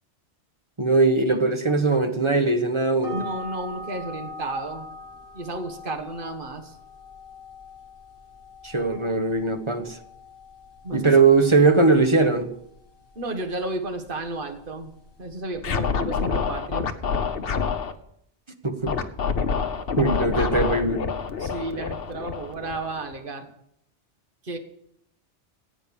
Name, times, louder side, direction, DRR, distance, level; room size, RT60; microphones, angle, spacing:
voice 1, 0.8-3.2 8.6-10.0 10.9-12.5 18.6-19.0 20.0-21.0, right 3 dB, 25° right, 1.1 m, -20 dB
sound 1, 3.0-15.4, left 2 dB, 15° left, 3.9 m, -43 dB
voice 2, 3.1-4.9 5.3-6.8 8.9-9.0 10.8-11.3 13.1-14.9 15.2-16.9 19.9-20.7 21.4-23.5 24.4-24.6, right 2 dB, 50° right, 1.7 m, -33 dB
Scratching (performance technique), 15.6-17.9 18.9-23.2, left 6 dB, 55° left, 1.1 m, -27 dB
15.0 x 9.0 x 7.0 m
omnidirectional pair, 1.2 m